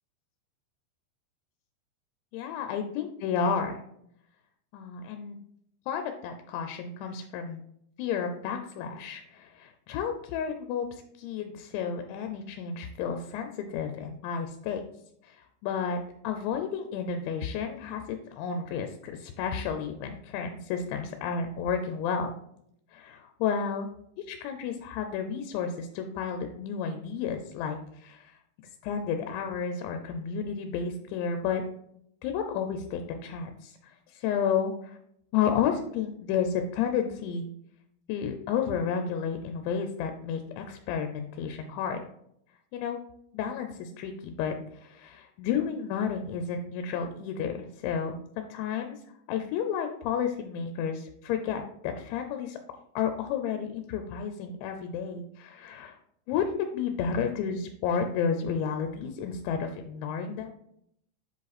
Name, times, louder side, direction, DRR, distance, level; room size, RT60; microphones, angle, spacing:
voice 1, 2.3-3.8 4.7-5.4 5.9-7.6 8.0-10.9 11.2-14.8 15.2-16.0 16.2-22.3 22.9-23.9 24.2-28.4 28.8-31.6 32.2-35.0 35.3-37.5 38.1-42.0 42.7-43.0 43.3-49.0 49.3-52.6 53.0-56.0 56.3-60.5, left 7 dB, 85° left, 6 dB, 3.0 m, -31 dB
7.8 x 5.0 x 4.1 m, 0.72 s
omnidirectional pair, 5.2 m